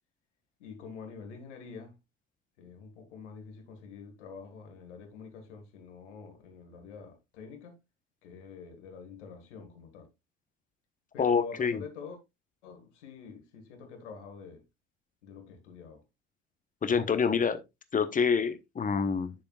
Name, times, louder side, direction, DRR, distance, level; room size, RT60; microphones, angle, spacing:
voice 1, 0.6-1.9 2.6-7.8 8.2-10.1 11.1-12.2 12.6-14.6 15.2-16.0, left 5 dB, 70° left, 1.7 m, -46 dB
voice 2, 11.2-11.8 16.8-17.6 17.9-19.3, left 6 dB, 20° left, 1.0 m, -27 dB
9.3 x 6.8 x 2.4 m
figure-of-eight pair, 60°, 37 cm